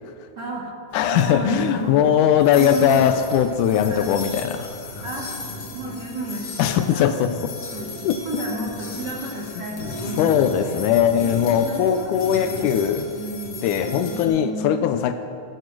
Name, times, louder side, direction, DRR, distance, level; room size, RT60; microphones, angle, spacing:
voice 1, 0.3-0.7 1.1-2.1 2.5-3.2 3.9-4.1 5.0-5.3 5.7-7.1 7.7-7.9 8.2-10.8 11.7-12.8 13.1-13.7 14.1-14.9, right 1 dB, 40° right, -3 dB, 1.8 m, -32 dB
voice 2, 0.9-5.0 6.6-7.6 8.0-8.2 10.2-13.1 13.6-15.1, left 9 dB, 80° left, 9 dB, 2.0 m, -20 dB
sound 1, 0.9-14.2, left 2 dB, 50° left, 2.1 m, -36 dB
13.5 x 10.0 x 6.1 m, 2.3 s
omnidirectional pair, 3.7 m